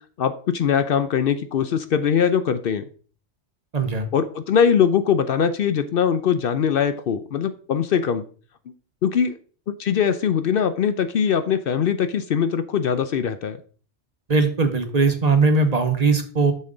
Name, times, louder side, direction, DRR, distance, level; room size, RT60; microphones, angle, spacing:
voice 1, 0.2-2.8 4.1-8.2 9.0-9.4 9.7-13.6, left 7 dB, 65° left, 10 dB, 0.7 m, -21 dB
voice 2, 3.7-4.1 14.3-16.5, right 4 dB, 40° right, 7 dB, 0.8 m, -19 dB
6.9 x 6.4 x 3.8 m, 0.41 s
omnidirectional pair, 1.1 m